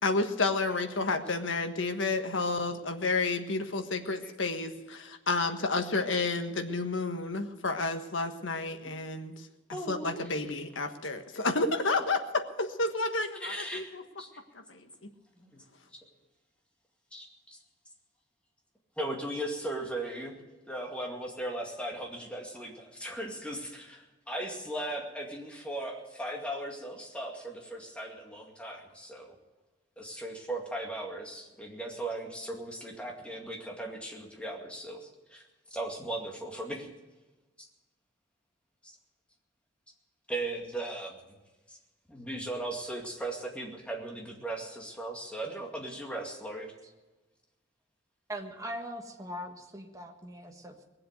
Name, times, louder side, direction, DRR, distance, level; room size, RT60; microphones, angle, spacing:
voice 1, 0.0-9.5 9.9-14.0 14.5-15.1, left 3 dB, 80° left, 7 dB, 1.4 m, -31 dB
voice 2, 9.7-10.2 13.4-14.3 15.4-15.6 17.1-17.6 19.0-20.4 20.7-29.3 30.0-35.4 35.7-36.9 38.8-38.9 40.3-41.2 41.7-41.8 42.1-46.7, right 1 dB, 5° left, 0 dB, 2.2 m, -38 dB
voice 3, 48.3-50.8, equal, 15° right, 3 dB, 1.5 m, -41 dB
20.0 x 7.7 x 8.0 m, 1.1 s
head